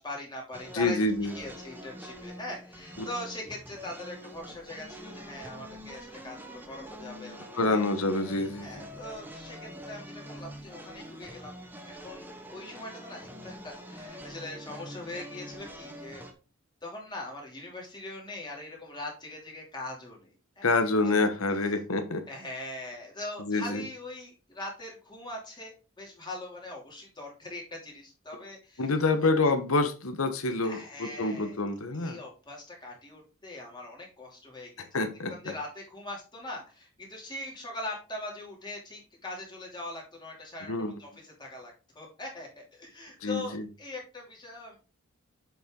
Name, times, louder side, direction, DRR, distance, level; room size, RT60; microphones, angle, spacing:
voice 1, 0.0-1.0 1.3-7.8 8.6-11.5 11.8-16.3 16.8-20.7 21.6-21.7 22.3-28.8 30.6-31.6 31.9-34.9 35.3-44.8, left 2 dB, 20° left, 2.8 m, -41 dB
sound 1, 0.5-16.3, equal, 10° right, 1.0 m, -45 dB
voice 2, 0.7-1.3 3.0-3.1 7.5-8.9 20.6-22.3 23.4-23.8 28.8-32.2 34.9-35.3 40.7-40.9 43.2-43.7, left 3 dB, 80° left, 1.2 m, -27 dB
7.6 x 5.5 x 3.8 m
head